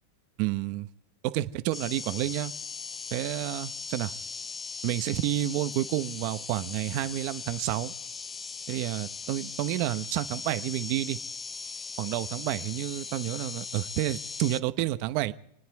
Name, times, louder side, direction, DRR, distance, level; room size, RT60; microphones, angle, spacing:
voice 1, 0.4-0.9 1.2-2.5 3.1-4.1 4.8-7.9 8.7-11.2 12.0-15.3, right 15 dB, 45° right, 0.9 m, -30 dB
sound 1, 1.7-14.6, left 4 dB, 15° left, 0.5 m, -39 dB
29.0 x 10.0 x 4.7 m
supercardioid pair, 145°, 0 cm